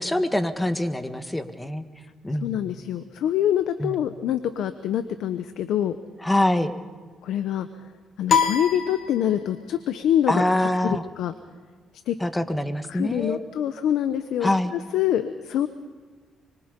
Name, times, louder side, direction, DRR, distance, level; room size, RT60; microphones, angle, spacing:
voice 1, 0.0-1.8 2.2-2.7 3.8-4.0 6.2-6.7 10.3-11.0 12.2-13.4 14.4-14.7, left 1 dB, 10° left, 9 dB, 1.7 m, -24 dB
voice 2, 2.4-6.0 7.2-7.7 8.2-10.4 10.8-11.3 12.1-12.2 12.9-15.7, left 10 dB, 80° left, 10 dB, 1.1 m, -25 dB
sound 1, 8.3-9.7, left 6 dB, 55° left, 1.9 m, -25 dB
25.5 x 23.5 x 5.4 m, 1.5 s
cardioid pair, 90°, 0 cm